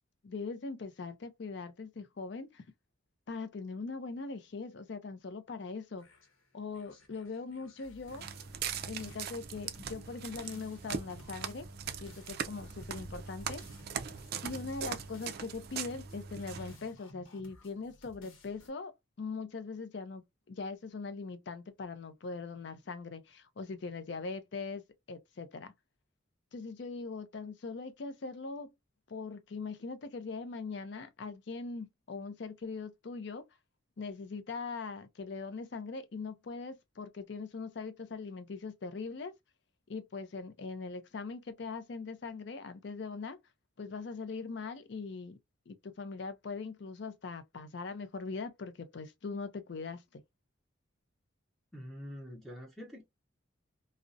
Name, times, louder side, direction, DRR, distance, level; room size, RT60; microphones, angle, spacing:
voice 1, 0.2-2.6 3.3-6.1 6.5-8.3 8.8-11.7 12.0-13.6 14.4-18.9 19.2-24.8 25.1-25.7 26.5-28.7 29.1-33.4 34.0-39.3 39.9-43.4 43.8-45.4 45.7-50.2, left 4 dB, 55° left, 0.4 m, -41 dB
sound 1, 6.0-18.7, left 1 dB, 80° left, 0.9 m, -57 dB
Walk footsteps, 8.1-16.8, right 7 dB, 50° right, 0.3 m, -41 dB
voice 2, 51.7-53.0, equal, ahead, 0.6 m, -45 dB
2.4 x 2.0 x 2.5 m
head